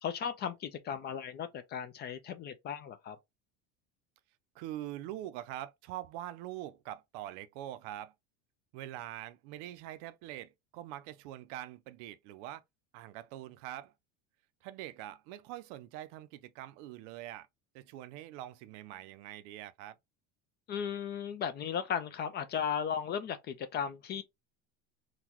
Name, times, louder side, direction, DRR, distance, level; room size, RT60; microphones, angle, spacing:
voice 1, 0.0-3.2 20.7-24.2, left 7 dB, 30° left, 0.3 m, -36 dB
voice 2, 4.5-8.1 8.7-12.6 12.9-13.9 14.6-17.5 17.7-20.0, right 13 dB, 65° right, 0.5 m, -44 dB
3.9 x 2.3 x 2.9 m
cardioid pair, 145°, 37 cm